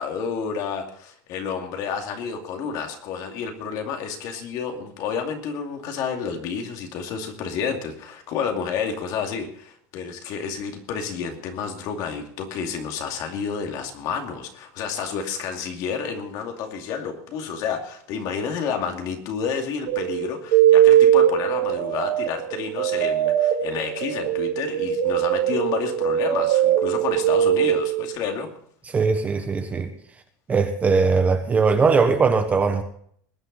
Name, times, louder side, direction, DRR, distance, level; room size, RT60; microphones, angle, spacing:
voice 1, 0.0-28.5, left 6 dB, 50° left, 4 dB, 2.5 m, -30 dB
sound 1, 19.9-28.1, right 11 dB, 65° right, 3.9 m, -20 dB
voice 2, 28.9-29.9 30.5-32.8, right 4 dB, 15° right, 7 dB, 1.2 m, -20 dB
21.0 x 9.2 x 4.0 m, 0.62 s
supercardioid pair, 155°, 9 cm